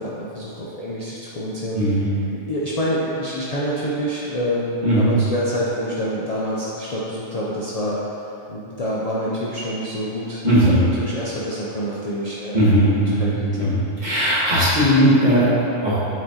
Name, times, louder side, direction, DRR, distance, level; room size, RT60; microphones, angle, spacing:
voice 1, 0.0-1.9 2.5-8.0 8.5-13.8, equal, 40° left, -7 dB, 0.6 m, -27 dB
voice 2, 1.7-2.1 4.8-5.1 10.4-10.8 12.5-15.5 15.8-16.0, equal, 40° right, -10 dB, 1.8 m, -18 dB
7.7 x 4.7 x 2.9 m, 2.8 s
omnidirectional pair, 1.2 m